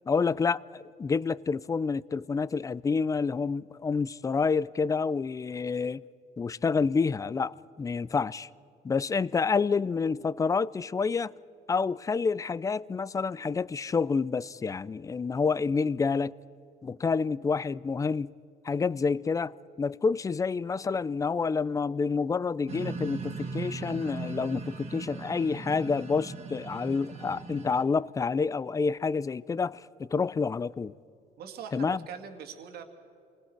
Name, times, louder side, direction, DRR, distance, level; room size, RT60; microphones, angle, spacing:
voice 1, 0.1-6.0 6.4-8.5 8.8-11.3 11.7-16.3 16.8-18.3 18.6-30.9 31.7-32.0, left 5 dB, 20° left, 0.4 m, -28 dB
sound 1, 22.7-27.8, right 4 dB, 40° right, 1.8 m, -38 dB
voice 2, 31.4-32.8, right 7 dB, 70° right, 2.1 m, -42 dB
28.5 x 20.5 x 4.5 m
cardioid pair, 110°, 17 cm